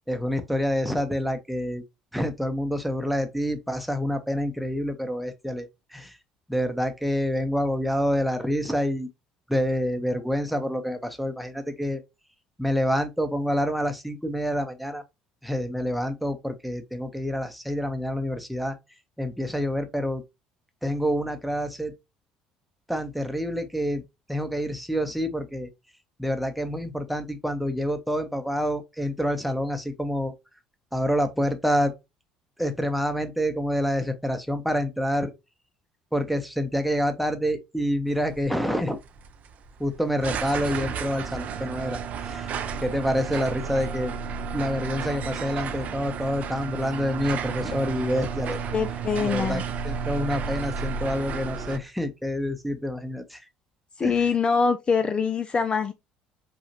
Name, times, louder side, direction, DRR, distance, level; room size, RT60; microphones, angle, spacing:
voice 1, 0.1-1.8 2.1-6.2 6.5-9.1 9.5-12.0 12.6-15.0 15.4-18.7 19.2-20.2 20.8-21.9 22.9-24.0 24.3-25.7 26.2-30.3 30.9-31.9 32.6-35.3 36.1-39.0 39.8-42.5 42.8-44.1 44.5-48.6 49.2-53.4 54.0-54.3, equal, ahead, 0.8 m, -27 dB
sound 1, 38.1-51.8, right 6 dB, 50° right, 0.5 m, -32 dB
voice 2, 48.7-49.6 54.0-55.9, left 5 dB, 30° left, 0.4 m, -24 dB
4.9 x 2.4 x 2.8 m
hypercardioid pair, 60°, 3 cm